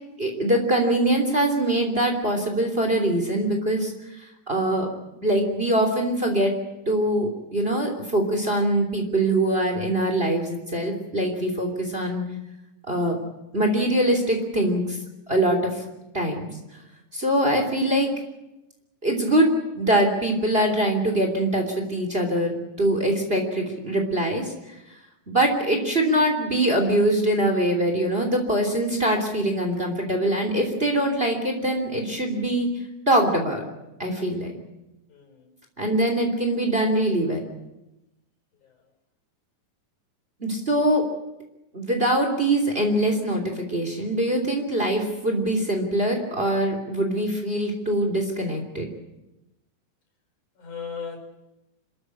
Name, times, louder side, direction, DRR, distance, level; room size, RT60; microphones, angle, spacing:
voice 1, 0.2-3.9 4.2-4.9 5.2-6.5 6.9-12.2 12.8-13.2 13.5-15.0 15.3-15.8 16.1-16.5 17.1-18.1 19.0-24.5 25.3-32.7 33.1-33.6 34.0-34.5 35.8-37.4 40.4-41.0 41.7-48.9, right 1 dB, 20° right, 3 dB, 3.2 m, -23 dB
voice 2, 35.1-35.5 38.6-38.8 50.6-51.2, left 6 dB, 80° left, 4 dB, 6.4 m, -37 dB
26.5 x 14.5 x 10.0 m, 0.96 s
omnidirectional pair, 3.5 m